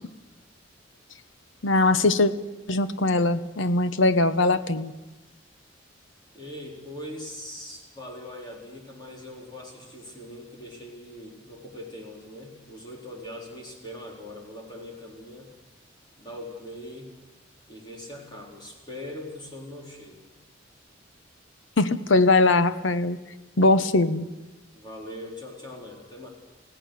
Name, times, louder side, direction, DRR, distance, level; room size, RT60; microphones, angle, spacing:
voice 1, 1.6-2.3 2.7-4.9 21.8-23.2 23.6-24.3, left 2 dB, 70° left, 11 dB, 1.0 m, -21 dB
voice 2, 6.3-15.5 16.2-17.1 17.7-20.2 24.7-26.3, left 1 dB, 25° left, -2 dB, 4.3 m, -41 dB
29.0 x 16.5 x 6.6 m, 1.1 s
head